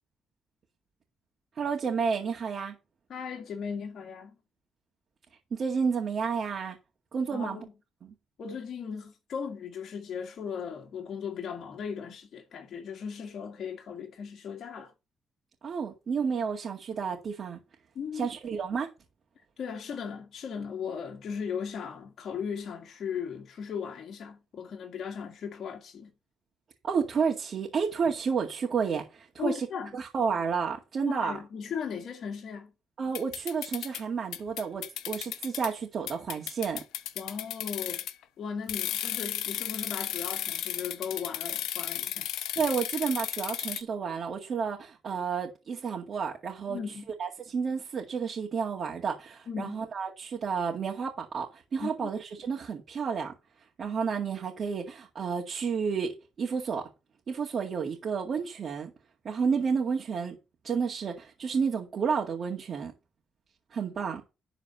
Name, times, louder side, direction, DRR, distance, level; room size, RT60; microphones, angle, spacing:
voice 1, 1.6-2.8 5.5-6.8 7.1-7.6 8.0-8.1 15.6-17.6 18.1-18.9 26.8-29.7 29.9-31.4 33.0-36.8 42.6-46.8 47.2-53.3 53.8-56.9 57.3-58.9 59.2-60.4 60.6-62.9 63.7-64.2, right 6 dB, 50° right, 2.1 m, -31 dB
voice 2, 3.1-4.3 7.3-7.7 8.4-14.9 18.0-18.3 19.4-26.1 29.4-30.0 31.0-32.7 37.2-38.0 38.4-42.3 46.7-47.1 49.5-49.8 51.8-52.1, left 6 dB, 60° left, 1.7 m, -37 dB
sound 1, 33.1-34.0 34.3-35.7 36.1-38.2 38.7-43.8, left 12 dB, 90° left, 0.7 m, -34 dB
11.5 x 4.1 x 6.7 m
cardioid pair, 90°, 0 cm